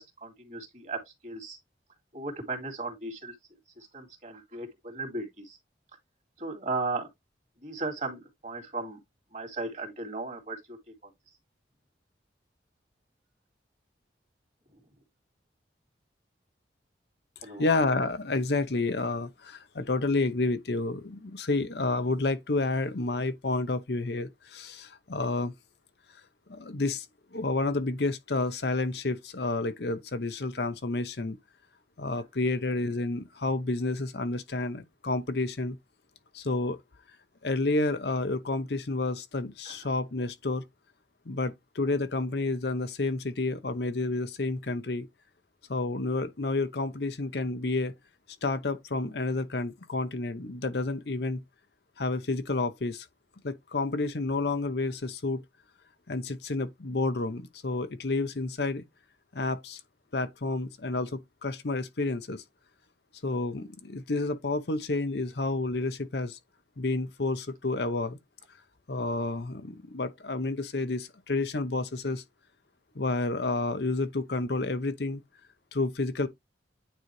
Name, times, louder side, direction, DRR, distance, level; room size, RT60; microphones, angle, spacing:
voice 1, 0.0-1.6 2.1-3.3 3.8-5.6 6.4-7.1 7.6-9.0 9.3-10.8 17.4-17.7 39.7-39.8, right 3 dB, 40° right, 2.2 m, -36 dB
voice 2, 17.6-25.5 26.5-27.1 27.3-31.4 32.0-35.8 36.3-36.8 37.4-40.6 41.3-45.1 45.7-47.9 48.4-51.4 52.0-53.1 53.4-55.4 56.1-58.8 59.3-59.8 60.1-62.4 63.2-66.4 66.8-68.2 68.9-72.2 72.9-75.2 75.7-76.3, left 2 dB, 65° left, 0.8 m, -30 dB
9.2 x 3.9 x 3.2 m
head